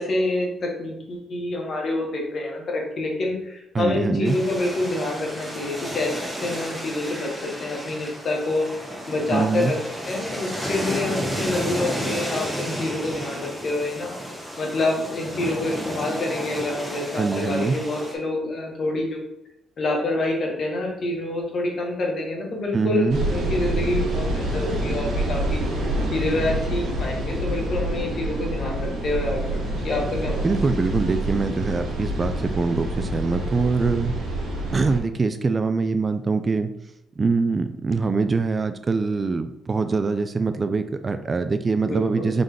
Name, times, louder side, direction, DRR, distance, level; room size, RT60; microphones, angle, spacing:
voice 1, 0.0-9.8 10.1-14.2 14.6-19.2 19.8-29.6 29.8-30.5 41.8-42.3, left 2 dB, 50° left, 0 dB, 1.3 m, -27 dB
voice 2, 3.7-4.4 9.3-9.7 17.2-17.8 22.7-23.2 30.4-34.2 34.7-36.7 37.2-42.4, right 4 dB, 30° right, 9 dB, 0.3 m, -23 dB
sound 1, 4.2-18.2, equal, ahead, 1.1 m, -32 dB
sound 2, 23.1-35.0, right 1 dB, 75° right, 1.1 m, -27 dB
3.8 x 3.2 x 3.4 m, 0.86 s
cardioid pair, 90°, 0 cm